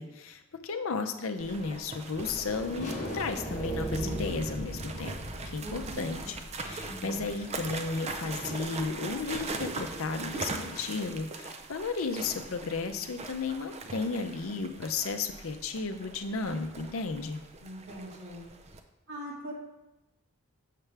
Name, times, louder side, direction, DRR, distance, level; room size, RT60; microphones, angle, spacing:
voice 1, 0.0-5.1 5.5-17.4, left 4 dB, 65° left, 8 dB, 0.6 m, -34 dB
sound 1, 1.4-18.8, right 3 dB, 30° right, 0.5 m, -41 dB
sound 2, 2.2-11.1, left 1 dB, 35° left, 1.0 m, -43 dB
sound 3, 2.8-5.8, right 2 dB, ahead, 0.8 m, -37 dB
voice 2, 5.6-6.3 17.6-18.4 19.1-19.5, equal, 75° right, -5 dB, 2.0 m, -42 dB
6.6 x 6.0 x 3.4 m, 0.96 s
head